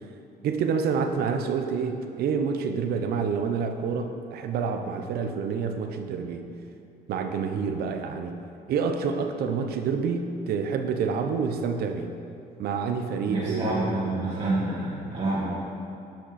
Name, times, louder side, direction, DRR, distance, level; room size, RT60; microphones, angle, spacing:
voice 1, 0.4-6.5 7.1-8.4 8.7-12.1 12.6-13.9, right 5 dB, 65° right, 7 dB, 0.7 m, -28 dB
voice 2, 13.3-15.5, right 2 dB, 40° right, -10 dB, 2.1 m, -27 dB
10.0 x 6.0 x 4.2 m, 2.6 s
cardioid pair, 110°, 17 cm